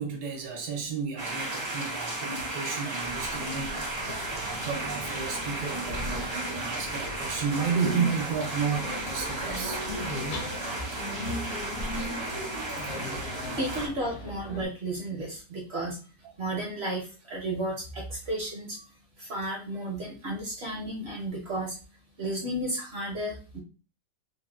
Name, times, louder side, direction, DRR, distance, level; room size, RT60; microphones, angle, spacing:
voice 1, 0.0-9.8, right 6 dB, 80° right, 1.2 m, -32 dB
sound 1, 1.2-13.9, right 2 dB, 40° right, 0.4 m, -35 dB
sound 2, 3.0-14.7, left 1 dB, 60° left, 1.0 m, -38 dB
voice 2, 13.6-16.0 16.4-18.8 19.2-21.8 22.2-23.6, right 1 dB, 55° right, 0.7 m, -33 dB
3.9 x 2.1 x 2.2 m
omnidirectional pair, 1.8 m